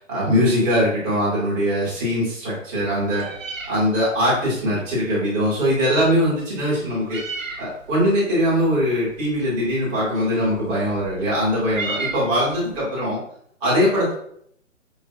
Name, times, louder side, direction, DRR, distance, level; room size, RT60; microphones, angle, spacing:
voice 1, 0.1-3.3 3.7-7.2 7.6-13.2 13.6-14.1, equal, 10° right, -7 dB, 0.6 m, -21 dB
Meow, 2.7-12.9, right 3 dB, 75° right, 0.8 m, -37 dB
4.9 x 2.9 x 2.6 m, 0.68 s
figure-of-eight pair, 135°, 39 cm